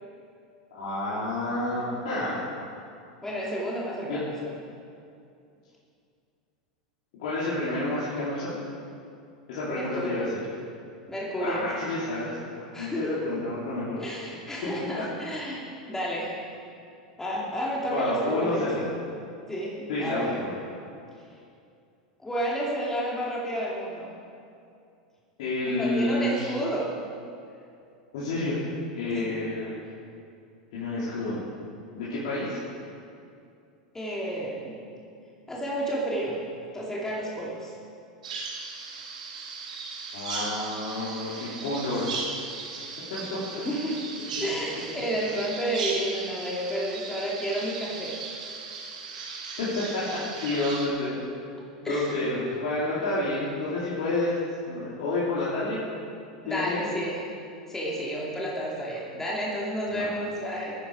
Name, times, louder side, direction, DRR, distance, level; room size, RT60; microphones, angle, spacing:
voice 1, 0.7-2.4 4.0-4.2 7.2-8.5 9.5-10.4 11.4-14.0 17.3-17.4 17.9-18.8 19.9-20.6 25.4-26.6 28.1-28.6 28.9-29.8 30.7-31.4 31.9-32.6 40.1-42.2 43.1-43.6 49.6-51.2 51.8-54.4 54.7-55.8 56.5-56.8 59.9-60.1, left 2 dB, 70° left, -9 dB, 3.5 m, -29 dB
voice 2, 3.2-4.5 9.7-10.3 11.1-11.7 12.7-13.5 14.0-16.3 17.2-18.9 19.5-20.4 22.2-24.1 25.8-26.9 29.1-29.4 33.9-34.8 35.5-36.4 36.7-37.7 43.6-44.0 44.4-48.1 51.8-52.1 56.4-57.2 57.7-60.7, right 1 dB, 10° left, -5 dB, 2.5 m, -31 dB
Bird vocalization bird call bird song, 38.2-50.9, right 4 dB, 80° right, 2.2 m, -37 dB
15.5 x 9.8 x 4.9 m, 2.5 s
hypercardioid pair, 100°, 4 cm